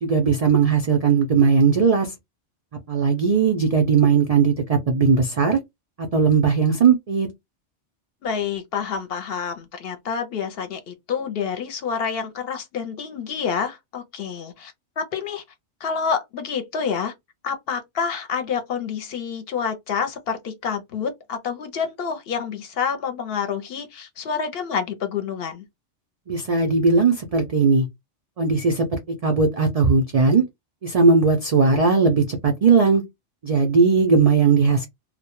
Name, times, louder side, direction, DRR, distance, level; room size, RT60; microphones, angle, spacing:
voice 1, 0.0-2.1 2.9-5.6 6.1-7.3 26.3-27.9 28.4-28.9 29.2-30.4 30.8-33.0 33.4-34.9, right 5 dB, 80° right, 0.3 m, -18 dB
voice 2, 8.2-15.4 15.8-17.1 17.4-25.6, left 6 dB, 65° left, 0.7 m, -28 dB
2.1 x 2.1 x 2.9 m
omnidirectional pair, 1.2 m